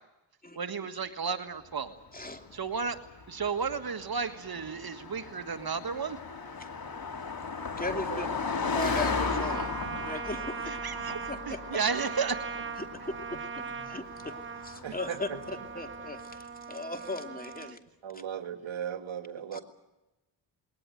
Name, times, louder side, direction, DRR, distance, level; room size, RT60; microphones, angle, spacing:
voice 1, 0.5-1.9 2.5-3.0 3.3-6.2 10.6-12.4, right 5 dB, 50° right, 9 dB, 1.7 m, -33 dB
voice 2, 2.1-2.5 6.4-6.7 7.8-8.3 8.7-9.7 10.0-10.8 11.3-11.8 12.8-17.8 19.5-19.6, left 2 dB, 20° left, 7 dB, 2.7 m, -38 dB
Car passing by, 2.3-16.0, left 4 dB, 50° left, 3.4 m, -36 dB
voice 3, 7.9-8.4 14.8-15.4 17.6-17.7 18.0-19.6, right 9 dB, 70° right, 9 dB, 1.9 m, -38 dB
Trumpet, 9.1-17.7, right 6 dB, 25° right, 1.4 m, -40 dB
20.5 x 19.0 x 9.2 m, 0.97 s
cardioid pair, 65°, 48 cm